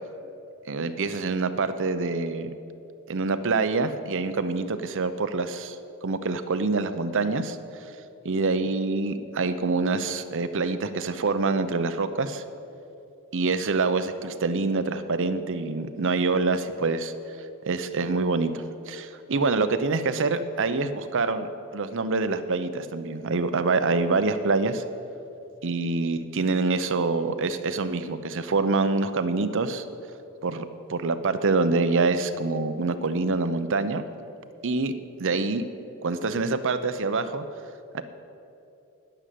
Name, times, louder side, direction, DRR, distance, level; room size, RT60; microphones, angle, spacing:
voice 1, 0.6-2.5 3.1-5.8 6.0-7.6 8.2-12.4 13.3-17.1 17.7-24.8 25.6-29.8 30.4-34.0 34.6-34.9 35.2-35.7 36.0-37.4 37.9-38.0, right 3 dB, 60° right, 10 dB, 0.7 m, -26 dB
11.5 x 10.0 x 7.6 m, 2.8 s
head